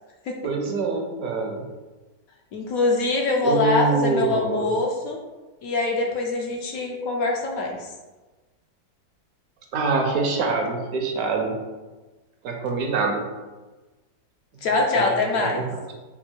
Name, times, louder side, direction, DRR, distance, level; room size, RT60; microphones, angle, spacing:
voice 1, 0.4-1.7 3.4-4.7 9.7-11.5 12.4-13.2 14.9-15.1 15.3-15.6, right 3 dB, 70° right, 2 dB, 1.0 m, -25 dB
voice 2, 2.5-5.2 5.6-7.9 14.6-15.7, left 2 dB, 70° left, 0 dB, 0.9 m, -24 dB
4.5 x 2.4 x 4.3 m, 1.2 s
omnidirectional pair, 1.7 m